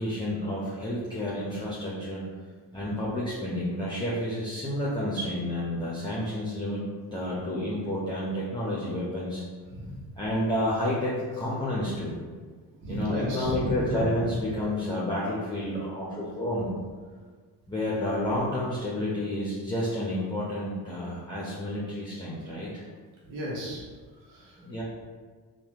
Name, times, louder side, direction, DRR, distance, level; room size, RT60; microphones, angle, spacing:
voice 1, 0.0-2.2 2.7-6.8 7.1-9.4 10.2-12.2 12.9-16.7 17.7-22.9 24.6-24.8, left 1 dB, 10° left, -8 dB, 0.9 m, -30 dB
voice 2, 9.7-10.1 12.8-14.4 23.3-23.8 24.2-24.6, equal, 80° right, -4 dB, 0.9 m, -33 dB
3.2 x 2.5 x 3.0 m, 1.5 s
hypercardioid pair, 45°, 47 cm